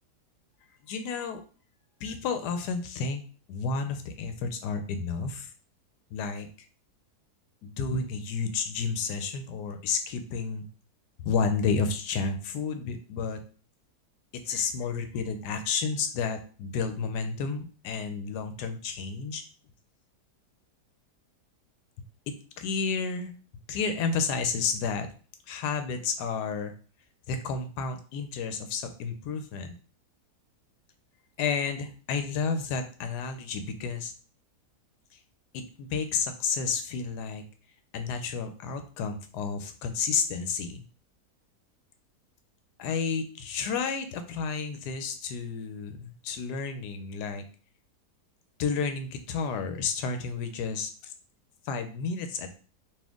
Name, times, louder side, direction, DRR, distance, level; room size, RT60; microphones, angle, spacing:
voice 1, 0.8-1.4 2.0-3.2 3.5-5.5 6.1-6.5 7.6-10.7 11.2-13.4 14.3-19.4 22.3-23.3 23.7-25.1 25.5-26.7 27.3-29.7 31.4-34.1 35.5-37.4 37.9-40.8 42.8-47.4 48.6-51.1 51.6-52.5, left 5 dB, 85° left, 7 dB, 1.2 m, -31 dB
4.4 x 2.5 x 3.5 m, 0.39 s
omnidirectional pair, 1.7 m